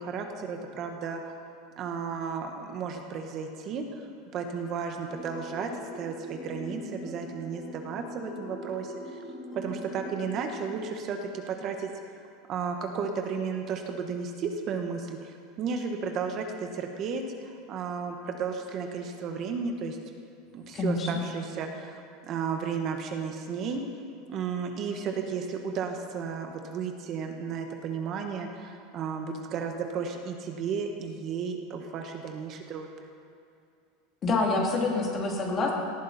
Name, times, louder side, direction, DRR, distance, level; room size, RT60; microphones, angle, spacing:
voice 1, 0.0-1.4 1.8-9.2 9.5-11.9 12.5-20.0 20.5-23.8 24.3-32.9, right 5 dB, 40° right, 4 dB, 1.4 m, -33 dB
sound 1, 5.1-10.8, equal, 10° left, 3.0 m, -42 dB
voice 2, 20.7-21.1 34.2-35.7, left 3 dB, 30° left, -1 dB, 3.0 m, -26 dB
18.5 x 14.5 x 4.3 m, 2.5 s
supercardioid pair, 145°, 0 cm